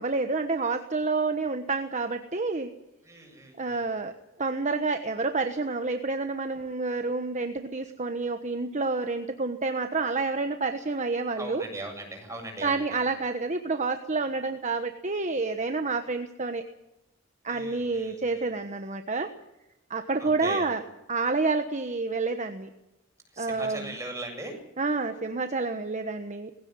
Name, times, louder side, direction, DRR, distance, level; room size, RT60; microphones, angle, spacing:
voice 1, 0.0-2.7 3.6-4.1 4.4-11.6 12.6-16.6 17.4-19.3 19.9-20.8 21.1-22.7 23.4-24.0 24.8-26.5, right 3 dB, 35° right, 7 dB, 1.2 m, -29 dB
voice 2, 3.0-3.9 11.4-13.0 17.5-18.5 20.2-20.7 23.3-24.6, right 2 dB, 15° right, 2 dB, 7.7 m, -39 dB
20.5 x 16.5 x 9.7 m, 0.94 s
head